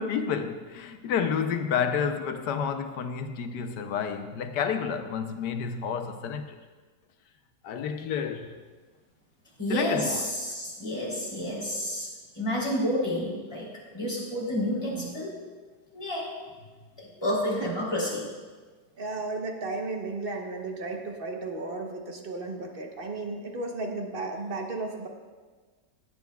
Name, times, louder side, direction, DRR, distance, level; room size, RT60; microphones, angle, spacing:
voice 1, 0.0-6.6 7.6-8.5 9.7-10.2, left 7 dB, 80° left, 1.3 m, -30 dB
voice 2, 9.6-12.1 12.3-13.6 13.9-15.3 15.9-16.3 17.0-18.2, equal, 15° left, 3.3 m, -29 dB
voice 3, 19.0-25.1, right 3 dB, 40° right, 1.0 m, -34 dB
17.5 x 8.6 x 2.3 m
omnidirectional pair, 1.8 m